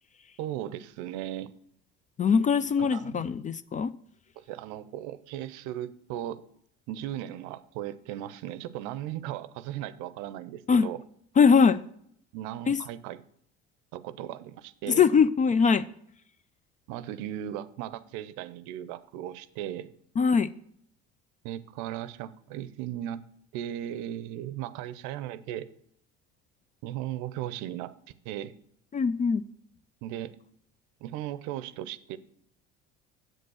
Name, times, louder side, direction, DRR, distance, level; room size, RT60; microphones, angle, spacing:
voice 1, 0.4-1.5 2.8-3.2 4.4-6.4 6.9-11.0 12.3-13.2 13.9-15.0 16.9-19.9 21.4-23.2 23.5-25.7 26.8-27.9 28.2-28.5 30.0-30.4 31.0-32.2, right 12 dB, 70° right, 0.6 m, -37 dB
voice 2, 2.2-3.9 10.7-10.9 11.4-11.8 12.7-12.8 14.9-15.9 20.2-20.5 28.9-29.4, left 6 dB, 25° left, 0.4 m, -22 dB
7.6 x 5.3 x 6.2 m
hypercardioid pair, 80°, 31 cm